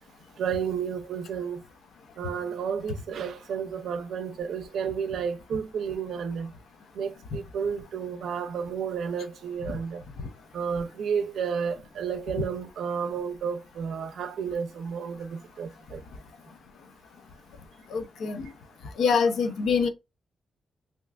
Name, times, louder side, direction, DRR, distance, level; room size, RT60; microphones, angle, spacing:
voice 1, 0.4-1.6 2.2-6.5 6.9-10.0 10.5-16.0, right 7 dB, 85° right, 0.5 m, -31 dB
voice 2, 17.9-18.5 19.0-19.9, left 5 dB, 90° left, 0.6 m, -24 dB
3.2 x 2.9 x 2.3 m
wide cardioid pair, 145°, 0 cm